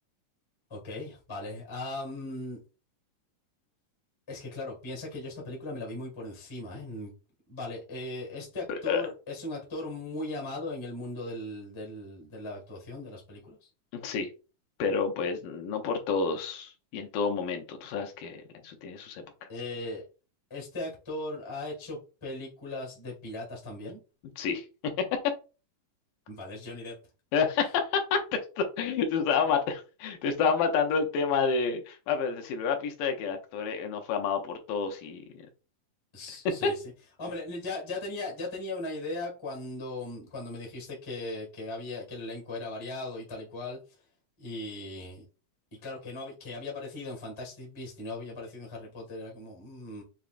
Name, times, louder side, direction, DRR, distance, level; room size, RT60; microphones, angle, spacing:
voice 1, 0.7-2.6 4.3-7.1 7.5-13.7 19.5-20.0 20.5-24.0 26.3-26.9 36.1-36.8 37.2-43.8 44.4-45.2 45.8-50.0, left 2 dB, 20° left, -1 dB, 0.7 m, -38 dB
voice 2, 8.7-9.1 13.9-14.3 14.8-19.5 24.4-24.7 27.3-35.4 36.6-36.7, left 5 dB, 75° left, 4 dB, 2.4 m, -29 dB
7.0 x 2.9 x 2.5 m, 0.33 s
omnidirectional pair, 4.0 m